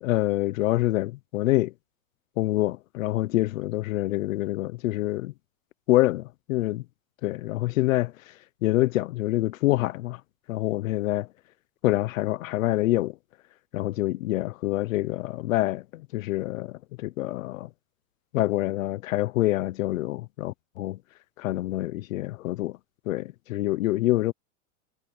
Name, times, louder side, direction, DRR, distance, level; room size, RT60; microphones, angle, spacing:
voice 1, 0.0-1.7 2.4-5.3 5.9-6.8 7.2-8.1 8.6-10.2 10.5-11.3 11.8-13.1 13.7-17.7 18.3-21.0 21.4-22.8 23.1-24.3, left 17 dB, 65° left, 0.8 m, -26 dB
supercardioid pair, 165°, 43 cm